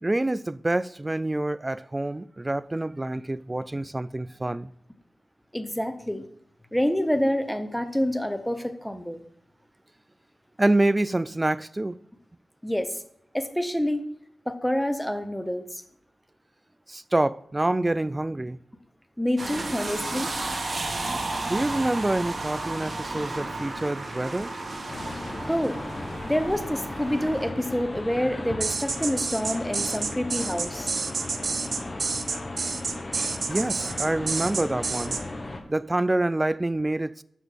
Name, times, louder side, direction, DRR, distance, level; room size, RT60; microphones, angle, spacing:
voice 1, 0.0-4.7 10.6-12.0 16.9-18.6 21.5-24.5 33.5-35.2 35.7-37.2, right 2 dB, 25° right, 0.3 m, -26 dB
voice 2, 5.5-6.2 6.7-9.2 12.6-12.9 13.3-14.0 14.5-15.8 19.2-20.3 25.5-25.8 26.2-30.9, equal, 5° left, 0.9 m, -27 dB
sound 1, 19.4-27.5, right 2 dB, 50° right, 1.2 m, -33 dB
sound 2, 24.9-35.6, left 2 dB, 35° left, 1.2 m, -36 dB
sound 3, 28.6-35.2, right 4 dB, 65° right, 0.6 m, -29 dB
6.4 x 6.0 x 5.1 m
cardioid pair, 60°, 0 cm